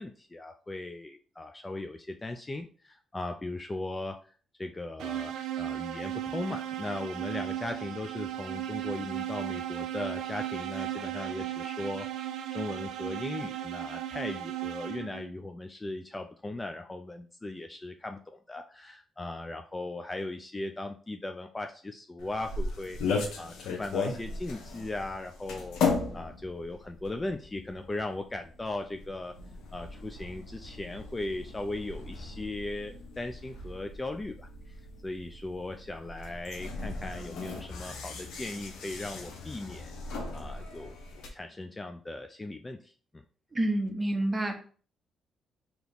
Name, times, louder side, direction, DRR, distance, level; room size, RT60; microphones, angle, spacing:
voice 1, 0.0-4.2 4.6-23.0 23.4-25.8 26.1-29.3 29.7-34.5 35.0-39.9 40.3-41.0 41.3-43.2, left 2 dB, 20° left, 6 dB, 0.4 m, -38 dB
sound 1, 5.0-15.3, right 12 dB, 85° right, 0.4 m, -36 dB
sound 2, 22.2-41.3, left 4 dB, 80° left, 0.8 m, -37 dB
voice 2, 43.5-44.5, right 1 dB, 20° right, 3 dB, 0.9 m, -28 dB
3.4 x 2.9 x 4.0 m, 0.41 s
cardioid pair, 90°, 0 cm